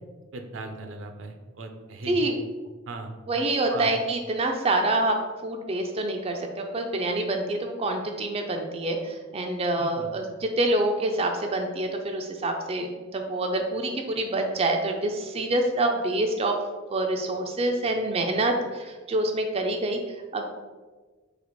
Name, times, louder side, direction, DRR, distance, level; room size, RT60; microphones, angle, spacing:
voice 1, 0.3-2.3 2.9-3.1 3.7-3.9 9.8-10.1, right 2 dB, 80° right, 5 dB, 0.6 m, -38 dB
voice 2, 2.1-2.4 3.3-5.2 5.4-16.6 16.9-20.5, right 2 dB, 30° right, 3 dB, 0.4 m, -26 dB
4.1 x 2.9 x 4.5 m, 1.4 s
head